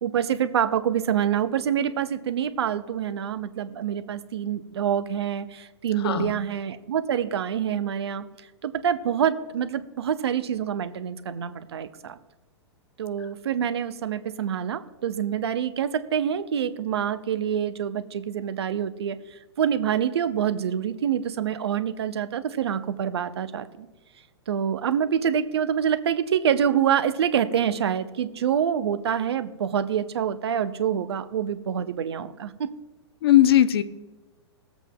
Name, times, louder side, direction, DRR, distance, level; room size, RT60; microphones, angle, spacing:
voice 1, 0.0-8.2 8.6-12.2 13.0-19.2 19.6-23.9 24.5-32.7, right 9 dB, 65° right, 11 dB, 0.7 m, -26 dB
voice 2, 6.0-6.4 33.2-33.8, left 12 dB, 60° left, 12 dB, 0.7 m, -18 dB
21.0 x 8.0 x 2.3 m, 1.1 s
figure-of-eight pair, 110°, 15 cm